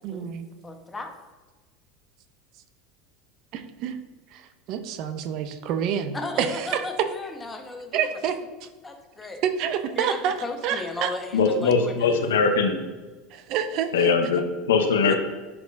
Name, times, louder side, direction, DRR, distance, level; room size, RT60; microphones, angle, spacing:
voice 1, 0.0-0.5 3.5-4.0 4.3-7.1 7.9-8.7 9.4-10.3 10.6-11.1 13.3-14.1 15.1-15.2, right 8 dB, 55° right, 9 dB, 0.6 m, -28 dB
voice 2, 0.6-1.1 6.1-8.0 8.8-9.4 9.9-12.2, left 3 dB, 15° left, 3 dB, 1.1 m, -35 dB
voice 3, 11.3-12.9 13.9-15.2, left 5 dB, 80° left, 5 dB, 0.8 m, -21 dB
10.5 x 3.6 x 2.5 m, 1.2 s
hypercardioid pair, 80°, 0 cm